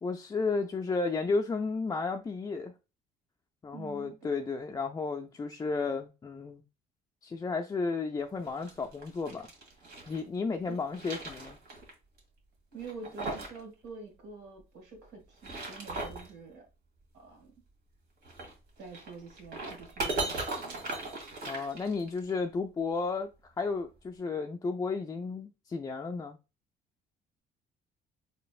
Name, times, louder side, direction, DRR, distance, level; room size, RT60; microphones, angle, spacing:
voice 1, 0.0-2.7 3.6-6.6 7.2-9.5 10.1-11.6 21.5-23.3 23.6-26.4, left 4 dB, 20° left, 0.4 m, -33 dB
voice 2, 3.7-4.1 10.7-10.8 12.7-16.7 17.1-17.5 18.8-20.8, right 4 dB, 75° right, 1.8 m, -46 dB
sound 1, 8.4-10.2 10.7-11.9 12.2-12.3 12.8-13.6 13.9-14.0 15.2-16.3 18.2-22.3, right 2 dB, 60° right, 1.7 m, -38 dB
4.1 x 3.2 x 2.4 m
cardioid pair, 110°, 17 cm